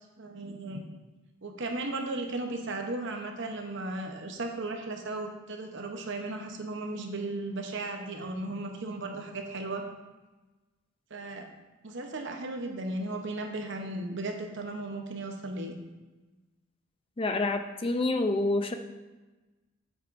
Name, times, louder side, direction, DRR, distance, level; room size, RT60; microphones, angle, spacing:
voice 1, 0.2-0.8 1.4-9.8 11.1-11.5 11.8-15.8, right 2 dB, 60° right, 4 dB, 0.9 m, -35 dB
voice 2, 17.2-18.8, left 2 dB, 25° left, 7 dB, 0.5 m, -27 dB
8.2 x 7.2 x 2.6 m, 1.2 s
head